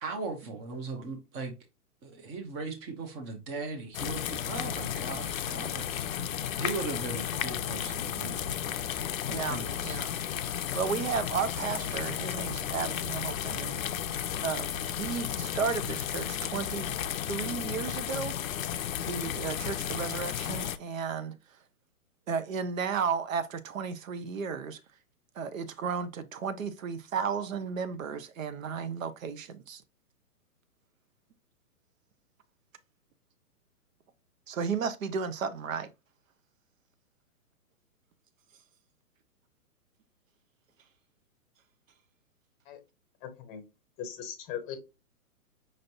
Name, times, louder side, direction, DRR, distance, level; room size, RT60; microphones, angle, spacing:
voice 1, 0.0-1.5 2.0-6.1 6.6-9.0 9.3-10.0, right 3 dB, 15° right, 0.5 m, -38 dB
sound 1, 3.9-20.8, left 10 dB, 60° left, 0.6 m, -33 dB
voice 2, 9.3-10.1 10.7-13.8 14.4-18.4 19.1-21.6 22.3-24.8 25.3-29.8 34.5-35.9, right 6 dB, 60° right, 0.8 m, -34 dB
voice 3, 43.2-43.6 44.0-44.8, left 8 dB, 15° left, 0.8 m, -39 dB
5.3 x 3.1 x 2.6 m
hypercardioid pair, 140°, 45 cm